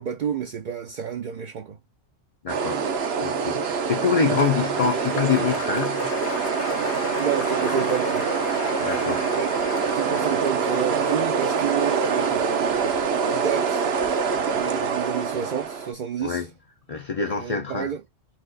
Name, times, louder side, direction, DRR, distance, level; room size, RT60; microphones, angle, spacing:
voice 1, 0.0-1.8 6.8-8.3 8.8-9.1 9.3-13.0 13.3-16.5 17.3-18.0, right 8 dB, 55° right, 0.6 m, -30 dB
voice 2, 2.4-2.9 3.2-6.1 8.8-9.3 16.2-16.5 16.9-17.9, left 6 dB, 45° left, 0.5 m, -25 dB
sound 1, 2.5-15.9, right 6 dB, 70° right, 1.0 m, -25 dB
Applause, 3.4-13.8 14.1-14.7, left 5 dB, 85° left, 1.2 m, -37 dB
4.2 x 2.4 x 3.8 m
omnidirectional pair, 1.1 m